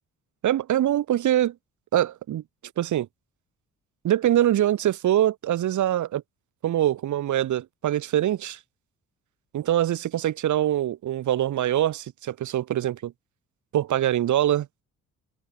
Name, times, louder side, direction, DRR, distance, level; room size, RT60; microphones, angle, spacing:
voice 1, 0.4-1.5 1.9-2.4 2.8-3.1 4.0-6.2 6.6-8.6 9.5-13.1 13.7-14.7, right 12 dB, 75° right, 5.5 m, -23 dB
open air
cardioid pair, 90°, 30 cm